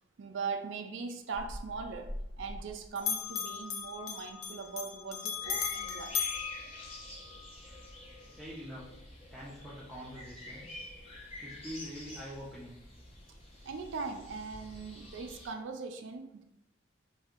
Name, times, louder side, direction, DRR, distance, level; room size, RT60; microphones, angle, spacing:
voice 1, 0.2-6.2 13.6-16.4, right 5 dB, 65° right, 5 dB, 0.4 m, -40 dB
Bell, 1.3-2.7 3.0-7.4, left 7 dB, 90° left, 0.6 m, -37 dB
sound 1, 5.4-15.5, left 1 dB, 30° left, 0.8 m, -48 dB
voice 2, 8.4-8.8 9.3-10.7 11.4-12.8, equal, ahead, -7 dB, 0.5 m, -44 dB
4.1 x 2.6 x 2.4 m, 0.81 s
head